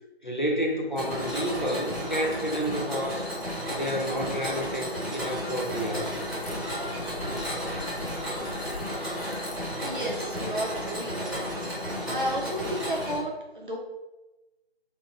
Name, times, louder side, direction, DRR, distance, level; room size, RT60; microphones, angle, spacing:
voice 1, 0.2-3.3 3.7-6.2, equal, 50° left, 1 dB, 0.5 m, -30 dB
Mechanisms, 0.9-13.2, equal, ahead, 0.7 m, -33 dB
sound 1, 5.3-11.1, left 1 dB, 80° left, 0.9 m, -42 dB
voice 2, 9.8-11.4 11.8-13.8, right 1 dB, 55° right, -2 dB, 0.6 m, -33 dB
2.7 x 2.0 x 3.9 m, 1.0 s
figure-of-eight pair, 180°, 32 cm